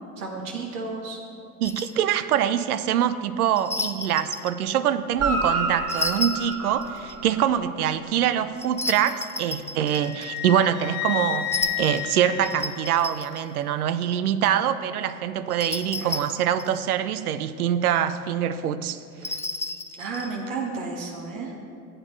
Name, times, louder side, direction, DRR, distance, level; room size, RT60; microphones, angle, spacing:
voice 1, 0.2-1.2 15.9-16.2 20.0-21.6, right 4 dB, 65° right, 0 dB, 1.5 m, -32 dB
sound 1, 1.6-2.0 3.6-4.6 5.9-7.2 8.6-10.5 11.5-13.4 15.5-16.8 19.1-20.4, left 2 dB, 5° left, 0.4 m, -32 dB
voice 2, 1.6-19.3, right 10 dB, 85° right, 13 dB, 0.6 m, -24 dB
Guitar, 5.1-7.7 11.6-11.7, right 2 dB, 35° right, 2.0 m, -29 dB
Wind instrument woodwind instrument, 9.9-13.4, left 13 dB, 55° left, 0.7 m, -32 dB
14.0 x 8.9 x 3.2 m, 2.4 s
hypercardioid pair, 70°, 43 cm